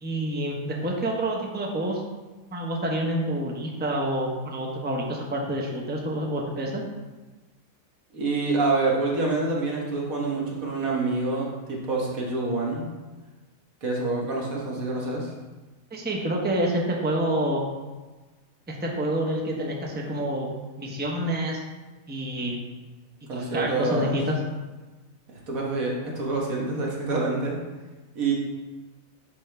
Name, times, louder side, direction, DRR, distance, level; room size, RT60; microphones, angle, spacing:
voice 1, 0.0-2.0 2.5-6.8 15.9-17.6 18.7-20.5 20.8-21.6 22.1-22.6 23.3-24.4, right 1 dB, 10° right, -1 dB, 0.7 m, -28 dB
voice 2, 8.1-12.9 13.8-15.3 23.3-24.2 25.5-27.6 28.1-28.3, right 3 dB, 85° right, -2 dB, 1.7 m, -27 dB
9.8 x 3.7 x 3.4 m, 1.2 s
omnidirectional pair, 1.4 m